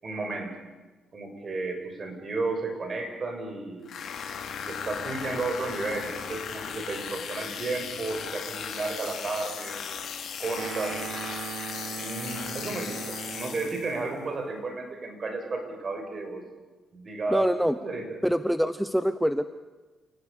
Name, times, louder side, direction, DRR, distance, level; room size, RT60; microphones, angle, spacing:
voice 1, 0.0-0.5 1.1-3.9 4.6-10.1 10.4-11.0 12.0-16.4 16.9-18.2, right 3 dB, 40° right, 4 dB, 6.7 m, -33 dB
sound 1, 3.9-14.0, left 7 dB, 60° left, 3.0 m, -37 dB
sound 2, 10.6-13.9, right 7 dB, 70° right, 1.9 m, -38 dB
voice 2, 17.3-17.8 18.2-19.5, equal, ahead, 12 dB, 0.9 m, -25 dB
29.0 x 18.0 x 6.9 m, 1.2 s
cardioid pair, 90°, 0 cm